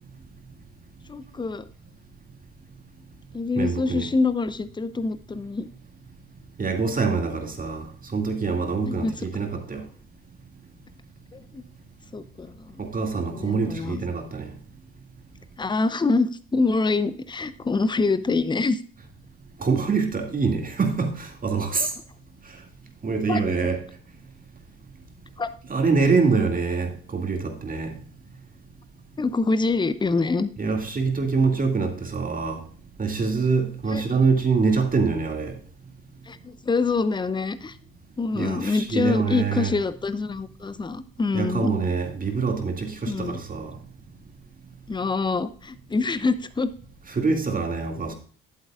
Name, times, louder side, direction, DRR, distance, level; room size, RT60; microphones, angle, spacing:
voice 1, 1.1-1.7 3.3-5.7 8.8-9.3 11.3-11.6 12.1-12.8 13.3-14.0 15.6-18.8 21.8-21.9 23.3-23.4 25.4-25.5 29.2-30.5 33.9-34.0 36.3-37.8 38.2-41.7 43.1-43.4 44.9-46.7, left 3 dB, 15° left, 0.7 m, -25 dB
voice 2, 3.5-4.1 6.6-9.8 12.8-14.5 19.6-21.9 23.0-23.8 25.7-27.9 30.6-32.6 33.0-35.6 38.3-39.7 41.3-43.7 47.1-48.1, right 4 dB, 30° right, 2.2 m, -25 dB
11.0 x 8.2 x 2.4 m
figure-of-eight pair, 45°, 29 cm